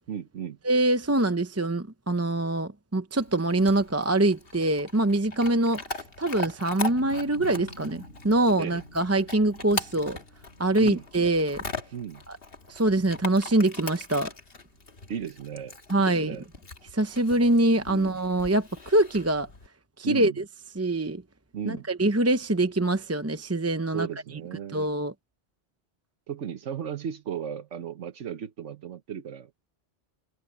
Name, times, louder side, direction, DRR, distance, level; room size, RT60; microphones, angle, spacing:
voice 1, 0.1-0.6 8.6-8.8 10.8-11.0 11.9-12.2 15.1-16.4 17.9-18.2 20.0-20.4 21.5-21.9 23.9-24.9 26.3-29.7, right 8 dB, 80° right, 1.3 m, -36 dB
voice 2, 0.6-10.2 10.6-11.6 12.3-12.4 12.7-14.3 15.9-16.4 16.9-19.5 20.0-20.4 20.7-21.2 21.7-24.1 24.7-25.1, right 2 dB, 15° right, 0.6 m, -24 dB
Chewing mastication / Dog, 3.2-19.7, left 3 dB, 55° left, 1.9 m, -40 dB
sound 1, 6.9-13.5, left 1 dB, 75° left, 5.8 m, -49 dB
omnidirectional pair, 1.2 m